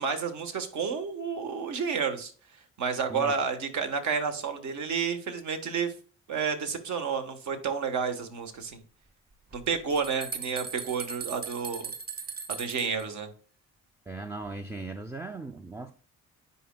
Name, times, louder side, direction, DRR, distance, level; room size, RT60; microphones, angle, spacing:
voice 1, 0.0-2.3 2.8-5.9 6.3-8.8 9.5-11.9 12.5-13.3, right 6 dB, 70° right, 1.2 m, -30 dB
sound 1, 9.5-13.0, right 5 dB, 30° right, 1.0 m, -38 dB
voice 2, 14.1-15.9, right 3 dB, 10° right, 0.4 m, -38 dB
9.9 x 4.3 x 2.2 m
cardioid pair, 90°, 30 cm